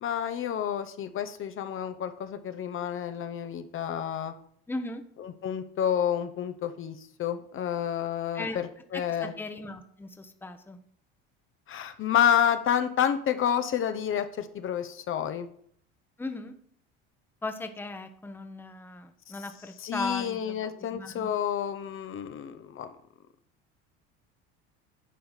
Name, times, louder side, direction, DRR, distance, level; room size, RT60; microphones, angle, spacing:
voice 1, 0.0-4.3 5.2-9.3 11.7-15.5 19.8-22.9, left 9 dB, 45° left, 8 dB, 0.9 m, -29 dB
voice 2, 4.7-5.0 8.3-8.6 8.9-10.8 16.2-16.5 17.4-21.3, left 2 dB, 5° left, 7 dB, 1.0 m, -37 dB
10.0 x 4.7 x 6.6 m, 0.63 s
supercardioid pair, 105°, 30 cm